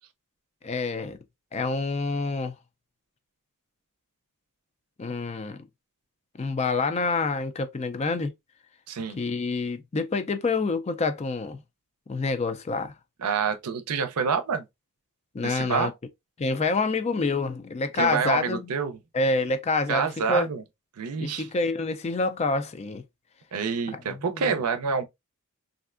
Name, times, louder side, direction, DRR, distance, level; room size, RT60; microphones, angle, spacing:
voice 1, 0.6-1.2 1.5-2.5 5.0-5.6 6.4-8.3 9.2-11.6 12.1-12.9 15.3-15.9 16.4-18.6 19.1-20.5 21.2-23.0 23.9-24.0 24.3-24.5, left 3 dB, 30° left, 0.3 m, -27 dB
voice 2, 8.9-9.2 13.2-14.6 15.4-15.9 17.9-19.0 19.9-20.6 21.0-21.5 23.5-25.0, right 6 dB, 85° right, 0.5 m, -27 dB
3.2 x 2.6 x 2.4 m
head